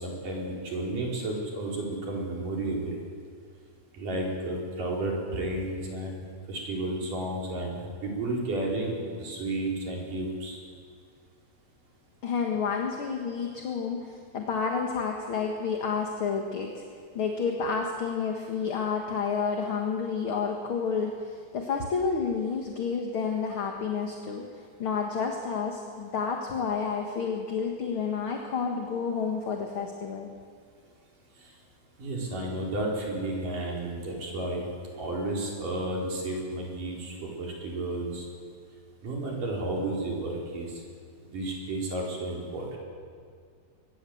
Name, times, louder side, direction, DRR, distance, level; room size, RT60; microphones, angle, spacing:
voice 1, 0.0-3.0 4.0-6.2 6.5-10.6 32.0-34.6 35.0-38.3 39.0-40.7 41.2-42.8, right 2 dB, 80° right, -2 dB, 6.1 m, -32 dB
voice 2, 12.2-16.8 17.1-24.4 24.8-30.3, left 5 dB, 45° left, 2 dB, 2.1 m, -30 dB
23.0 x 21.0 x 8.0 m, 2.1 s
omnidirectional pair, 3.7 m